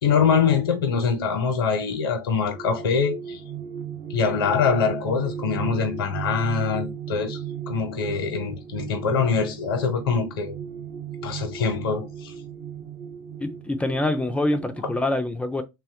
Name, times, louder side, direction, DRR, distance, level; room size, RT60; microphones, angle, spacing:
voice 1, 0.0-3.4 4.1-7.4 7.7-10.5 11.2-12.3, left 6 dB, 85° left, 0.8 m, -24 dB
sound 1, 2.2-15.0, right 8 dB, 40° right, 0.8 m, -36 dB
voice 2, 13.4-15.6, left 1 dB, 10° left, 0.4 m, -25 dB
3.0 x 2.2 x 2.7 m
hypercardioid pair, 100°, 12 cm